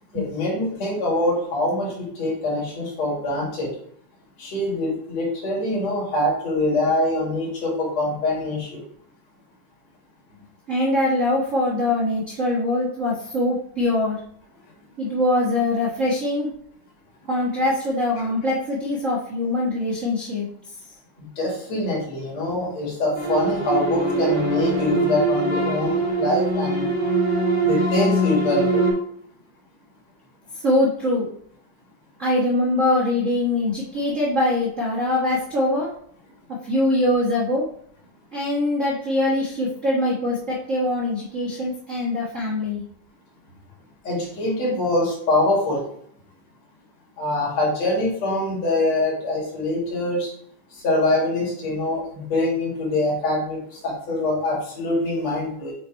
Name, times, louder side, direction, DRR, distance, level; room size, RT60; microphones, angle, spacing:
voice 1, 0.1-3.7 4.4-8.8 21.2-26.8 27.6-28.8 44.0-45.8 47.2-50.3 50.8-55.7, left 1 dB, 55° left, -3 dB, 2.8 m, -24 dB
voice 2, 10.7-14.2 15.0-16.5 17.3-20.4 30.5-31.3 32.2-35.9 36.6-37.6 38.3-42.8, left 1 dB, 85° right, -8 dB, 0.6 m, -23 dB
sound 1, 23.2-28.9, right 2 dB, 15° left, 0.5 m, -22 dB
7.5 x 3.0 x 4.4 m, 0.64 s
omnidirectional pair, 3.7 m